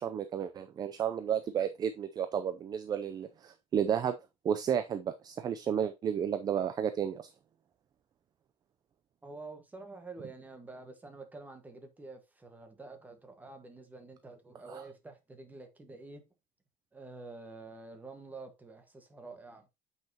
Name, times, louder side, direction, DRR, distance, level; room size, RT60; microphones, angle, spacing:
voice 1, 0.0-4.2 4.4-7.2 14.7-14.8, right 8 dB, 25° right, 0.5 m, -32 dB
voice 2, 9.2-16.2 16.9-19.7, right 3 dB, 10° right, 1.4 m, -48 dB
8.8 x 5.6 x 2.9 m
cardioid pair, 165°, 15 cm